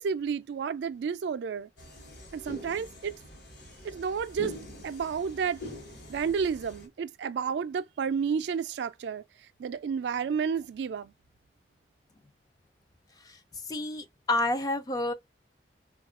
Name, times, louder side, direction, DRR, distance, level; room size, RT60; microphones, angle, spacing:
voice 1, 0.0-1.7 2.3-3.2 3.8-4.5 4.8-5.6 6.1-9.2 9.6-11.1, right 6 dB, 75° right, 0.3 m, -31 dB
sound 1, 1.8-6.9, left 1 dB, 60° left, 1.0 m, -45 dB
voice 2, 13.7-15.1, left 2 dB, 20° left, 0.4 m, -29 dB
3.5 x 2.3 x 2.3 m
head